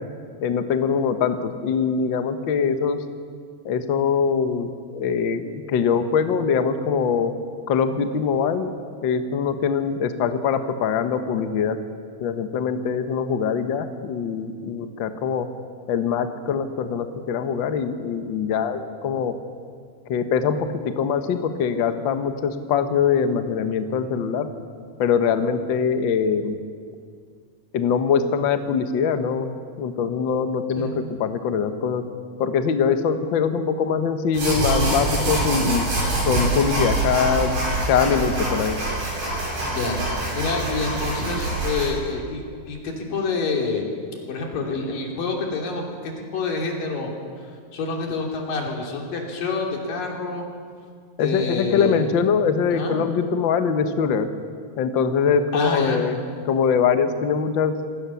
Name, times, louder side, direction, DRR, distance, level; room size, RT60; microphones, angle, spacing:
voice 1, 0.4-3.0 3.6-7.3 7.7-8.7 9.0-11.8 12.2-15.5 15.9-19.3 20.1-20.6 20.8-24.5 25.0-26.6 27.7-29.5 29.8-32.0 32.4-35.9 36.2-37.6 37.9-38.8 51.2-54.3 54.8-56.2 56.4-57.8, left 6 dB, 65° left, 8 dB, 1.2 m, -23 dB
sound 1, 34.3-41.9, right 2 dB, 85° right, 9.7 m, -25 dB
voice 2, 39.6-43.9 44.3-47.1 47.7-50.5 51.2-52.1 52.7-53.0 55.5-56.0, left 4 dB, 85° left, 1 dB, 4.6 m, -27 dB
26.5 x 16.5 x 7.0 m, 2.1 s
omnidirectional pair, 3.8 m